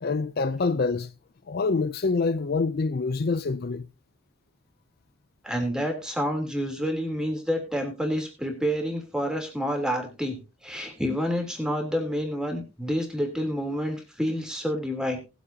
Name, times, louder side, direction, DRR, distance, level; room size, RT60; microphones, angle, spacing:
voice 1, 0.0-1.1 1.5-3.9, left 4 dB, 45° left, 0.5 m, -26 dB
voice 2, 5.4-15.2, equal, 5° right, 3.1 m, -28 dB
19.0 x 8.2 x 2.8 m
head